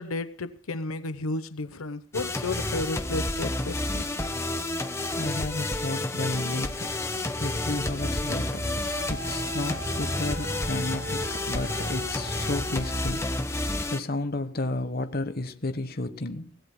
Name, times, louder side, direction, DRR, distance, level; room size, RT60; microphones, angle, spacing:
voice 1, 0.0-4.1, left 2 dB, 90° left, 0.9 m, -33 dB
sound 1, 2.1-14.0, left 2 dB, 15° left, 1.0 m, -30 dB
voice 2, 5.1-7.0 7.4-16.6, left 2 dB, 45° left, 1.1 m, -32 dB
sound 2, 7.7-12.9, left 1 dB, 60° left, 5.7 m, -42 dB
Wind instrument woodwind instrument, 8.8-13.3, right 2 dB, 65° right, 2.9 m, -42 dB
24.5 x 17.0 x 2.2 m
head